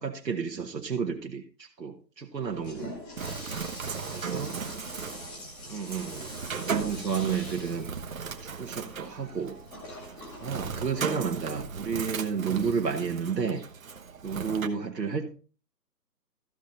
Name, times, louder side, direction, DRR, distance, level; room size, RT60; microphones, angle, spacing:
voice 1, 0.0-3.0 4.1-4.6 5.7-7.9 8.4-9.6 10.4-13.6 14.2-15.4, right 6 dB, 75° right, 1.8 m, -31 dB
Toilet flush, 2.4-11.8, left 2 dB, 10° left, 1.2 m, -45 dB
Bird, 3.2-14.7, right 6 dB, 55° right, 1.3 m, -37 dB
voice 2, 4.3-5.8 10.9-11.2 14.9-15.2, right 3 dB, 15° right, 1.1 m, -51 dB
15.0 x 5.3 x 4.2 m
figure-of-eight pair, 150°, 50 cm